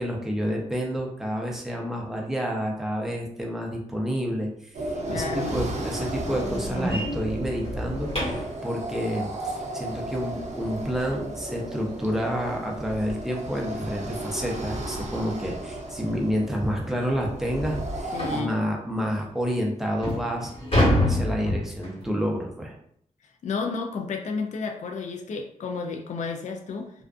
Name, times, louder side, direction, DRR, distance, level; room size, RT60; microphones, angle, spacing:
voice 1, 0.0-20.5 20.9-22.7, equal, 5° right, -1 dB, 0.6 m, -29 dB
sound 1, 4.7-18.4, right 1 dB, 60° right, 0.5 m, -34 dB
voice 2, 5.1-5.6 18.1-18.6 23.4-26.9, left 4 dB, 65° left, 3 dB, 0.4 m, -31 dB
sound 2, 5.5-8.6 11.4-11.5 12.0-12.2 12.5-12.6 13.1-13.2 14.3-14.4 14.8-15.0 15.6-15.7 16.1-16.2 16.7-16.8 18.2-18.5 19.2-19.3 19.8-22.1, left 1 dB, 45° left, 1.4 m, -27 dB
2.4 x 2.4 x 2.3 m, 0.66 s
wide cardioid pair, 90°, 13 cm